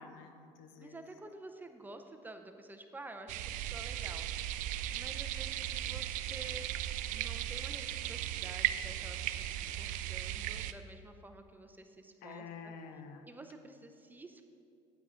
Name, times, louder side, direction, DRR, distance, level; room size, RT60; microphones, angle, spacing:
voice 1, 0.0-1.0 12.2-13.3, left 5 dB, 75° left, 7 dB, 0.9 m, -49 dB
voice 2, 0.8-4.3 4.9-6.7 7.1-12.7 13.2-14.4, right 2 dB, 15° right, 6 dB, 0.6 m, -50 dB
sound 1, 3.3-10.7, right 12 dB, 70° right, 0.4 m, -37 dB
9.4 x 8.1 x 3.8 m, 2.5 s
cardioid pair, 115°, 14 cm